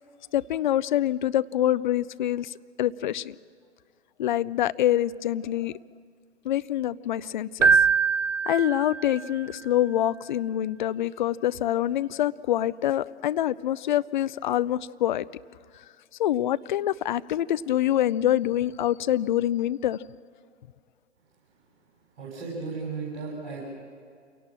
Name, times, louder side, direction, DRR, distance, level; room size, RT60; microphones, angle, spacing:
voice 1, 0.3-3.4 4.2-5.8 6.4-7.7 8.5-15.2 16.2-20.0, left 12 dB, 40° left, 17 dB, 0.5 m, -25 dB
Keyboard (musical), 7.6-9.4, right 5 dB, 85° right, 0.7 m, -23 dB
voice 2, 22.1-23.6, right 4 dB, 55° right, -4 dB, 6.8 m, -35 dB
28.0 x 18.0 x 7.5 m, 2.2 s
figure-of-eight pair, 120°, 36 cm